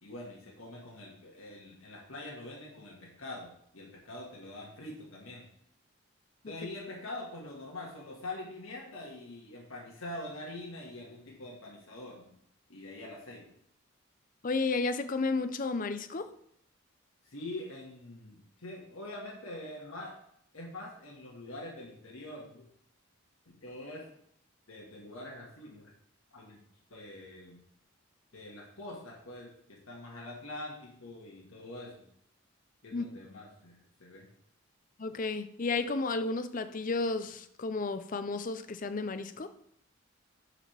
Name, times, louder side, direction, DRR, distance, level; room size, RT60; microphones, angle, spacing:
voice 1, 0.0-5.4 6.5-12.3 12.7-13.4 17.2-20.2 20.5-22.7 23.5-24.0 24.7-25.9 26.3-26.6 26.9-27.6 28.3-32.1 32.8-34.3, left 1 dB, 85° left, -2 dB, 1.7 m, -44 dB
voice 2, 14.4-16.3 32.9-33.1 35.0-39.5, left 3 dB, 40° left, 10 dB, 0.5 m, -32 dB
10.5 x 4.9 x 3.4 m, 0.71 s
head